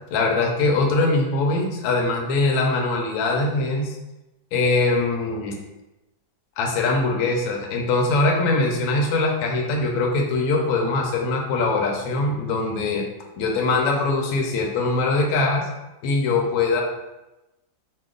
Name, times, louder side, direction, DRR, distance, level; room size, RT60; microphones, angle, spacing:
voice 1, 0.1-4.0 4.5-5.6 6.6-13.0 13.4-15.7 16.0-16.8, left 3 dB, 70° left, 1 dB, 1.0 m, -22 dB
2.8 x 2.1 x 3.7 m, 0.99 s
omnidirectional pair, 1.8 m